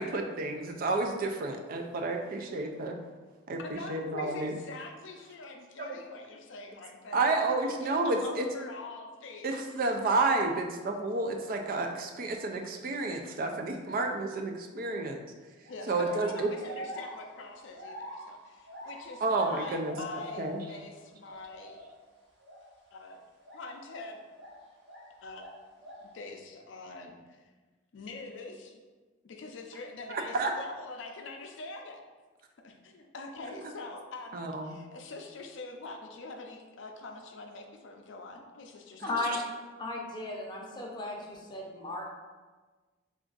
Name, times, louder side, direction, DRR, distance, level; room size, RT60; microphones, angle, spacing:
voice 1, 0.0-3.0 3.5-4.5 5.8-5.9 7.1-8.5 9.4-15.2 15.9-16.5 19.2-20.0 20.4-20.6 30.1-30.5 34.3-34.7, right 3 dB, 45° right, 4 dB, 0.4 m, -30 dB
voice 2, 3.6-10.1 15.7-21.8 22.9-23.2 23.5-24.2 25.2-25.4 26.0-27.5 27.9-28.8 29.2-32.0 32.6-39.2, left 3 dB, 70° left, 3 dB, 0.4 m, -44 dB
sound 1, 15.6-16.0 16.6-20.9 21.2-22.0 22.4-22.7 23.4-25.1 25.3-26.1, equal, 65° right, 1.0 m, -45 dB
voice 3, 39.0-39.4 39.8-42.0, left 2 dB, 25° left, -2 dB, 0.6 m, -35 dB
3.4 x 2.4 x 3.8 m, 1.3 s
head